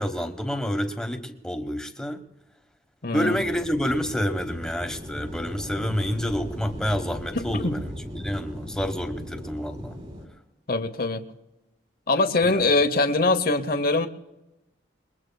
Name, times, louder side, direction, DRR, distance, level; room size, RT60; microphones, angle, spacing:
voice 1, 0.0-2.2 3.1-10.0 12.4-12.6, equal, 5° left, 5 dB, 1.2 m, -28 dB
voice 2, 3.0-3.4 7.4-7.8 10.7-11.2 12.1-14.1, left 3 dB, 50° left, 8 dB, 0.9 m, -23 dB
sound 1, 3.3-10.3, equal, 35° right, 3.8 m, -38 dB
29.0 x 21.5 x 2.3 m, 0.98 s
head